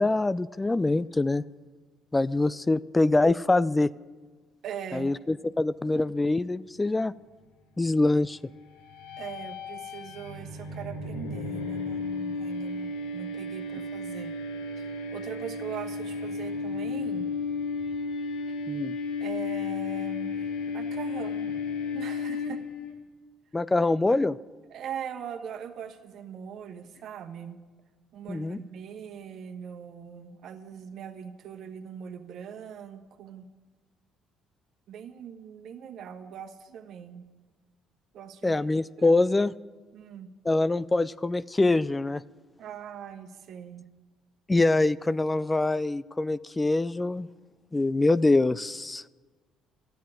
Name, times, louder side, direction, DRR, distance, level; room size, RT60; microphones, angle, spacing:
voice 1, 0.0-1.4 2.1-3.9 4.9-7.1 7.8-8.4 18.7-18.9 23.5-24.4 28.3-28.6 38.4-39.5 40.4-42.2 44.5-47.3 47.7-49.0, left 2 dB, 20° left, 18 dB, 0.4 m, -24 dB
voice 2, 4.6-5.1 9.2-14.3 14.8-17.3 18.5-18.6 19.2-21.5 21.9-22.6 24.7-27.6 28.1-33.5 34.9-37.2 38.1-38.6 39.0-39.2 39.9-40.3 42.6-43.8, right 8 dB, 65° right, 6 dB, 1.3 m, -41 dB
sound 1, 8.9-22.9, left 4 dB, 85° left, 1.9 m, -33 dB
12.5 x 9.3 x 8.8 m, 1.3 s
hypercardioid pair, 55°, 0 cm